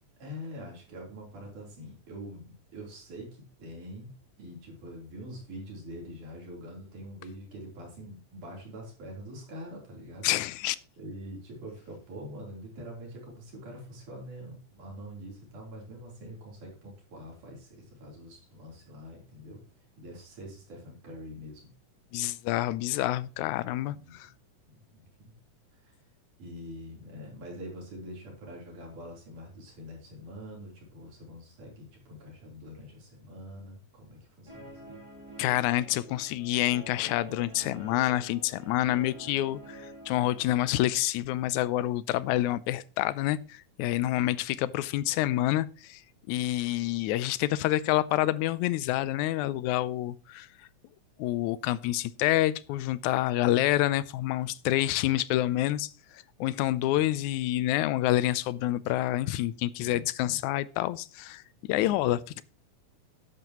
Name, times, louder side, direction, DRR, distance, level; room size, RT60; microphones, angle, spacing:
voice 1, 0.2-4.1 4.4-10.3 11.0-19.6 20.0-21.7 23.9-24.2 24.7-25.3 25.7-26.0 26.4-35.0 59.8-60.4 61.7-62.2, equal, 80° right, 5.1 m, -44 dB
voice 2, 10.2-10.8 22.1-24.3 35.4-46.0 46.3-50.5 51.2-55.9 56.4-61.4 61.7-62.4, left 15 dB, 80° left, 2.0 m, -28 dB
Guitar, 34.5-41.0, right 1 dB, 10° right, 1.5 m, -47 dB
12.5 x 11.0 x 3.0 m
omnidirectional pair, 3.5 m